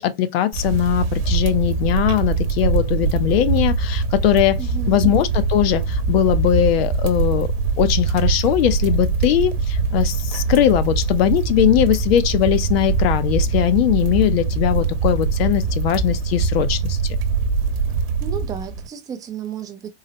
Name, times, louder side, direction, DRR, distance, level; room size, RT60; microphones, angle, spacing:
voice 1, 0.0-4.6 4.9-7.5 7.8-17.2, left 11 dB, 65° left, 0.6 m, -20 dB
sound 1, 0.5-18.9, right 4 dB, 60° right, 0.9 m, -22 dB
voice 2, 4.6-5.1 17.7-19.9, right 8 dB, 10° right, 0.3 m, -33 dB
3.9 x 2.1 x 2.7 m
supercardioid pair, 145°, 33 cm